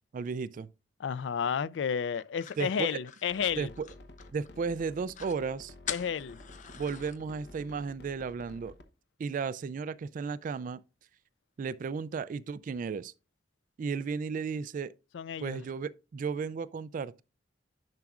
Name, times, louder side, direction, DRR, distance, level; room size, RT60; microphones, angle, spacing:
voice 1, 0.1-0.7 2.6-3.0 3.6-3.9 4.3-5.7 6.8-8.7 9.2-10.8 11.6-13.1 13.8-14.9 15.4-17.2, right 5 dB, 45° right, 0.3 m, -34 dB
voice 2, 1.0-3.7 5.9-6.4 15.1-15.6, left 7 dB, 85° left, 0.4 m, -32 dB
sound 1, 2.1-4.5 4.8-4.9 5.1-5.4 5.9-7.2, left 9 dB, 45° left, 0.7 m, -43 dB
sound 2, 3.3-8.9, left 2 dB, 65° left, 0.9 m, -51 dB
10.5 x 5.8 x 2.4 m
head